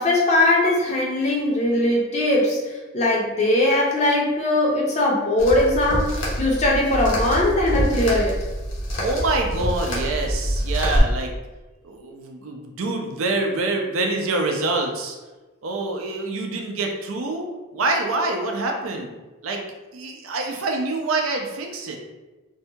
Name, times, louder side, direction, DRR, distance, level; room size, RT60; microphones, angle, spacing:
voice 1, 0.0-6.1 6.4-8.4, left 1 dB, 30° left, -3 dB, 0.5 m, -20 dB
sound 1, 5.4-11.0, equal, 70° left, 0.8 m, -25 dB
voice 2, 9.0-11.3 11.8-15.2 15.6-17.5 17.7-19.1 19.4-19.6 19.9-22.0, right 2 dB, 80° right, 2 dB, 0.4 m, -26 dB
2.6 x 2.2 x 2.7 m, 1.2 s
head